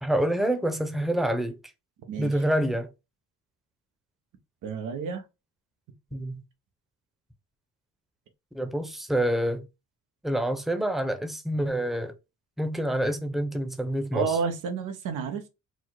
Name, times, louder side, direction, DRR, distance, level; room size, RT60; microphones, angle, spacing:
voice 1, 0.0-1.6 2.2-2.9 6.1-6.4 8.5-9.6 10.2-12.1 12.6-14.4, right 1 dB, ahead, 0.8 m, -27 dB
voice 2, 4.6-5.2 14.1-15.5, right 6 dB, 90° right, 0.9 m, -30 dB
4.4 x 2.0 x 4.4 m
cardioid pair, 90°, 30 cm